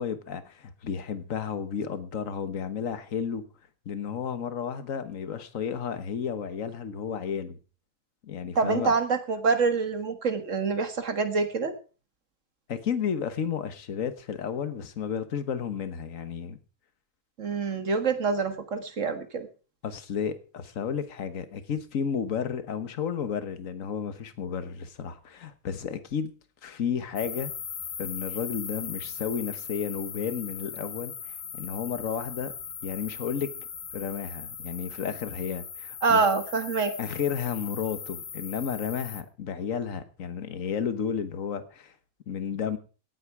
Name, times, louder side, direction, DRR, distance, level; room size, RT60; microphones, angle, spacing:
voice 1, 0.0-3.4 3.9-7.6 8.2-8.9 12.7-16.6 19.8-26.3 26.6-27.5 28.0-31.1 31.5-32.5 32.8-33.5 33.9-36.3 37.0-41.9 42.3-42.8, left 7 dB, 70° left, 1.6 m, -32 dB
voice 2, 8.6-11.7 17.4-19.5 36.0-36.9, right 4 dB, 60° right, 1.9 m, -26 dB
sound 1, 27.2-39.2, left 7 dB, 50° left, 1.3 m, -39 dB
18.0 x 8.8 x 4.8 m
omnidirectional pair, 1.5 m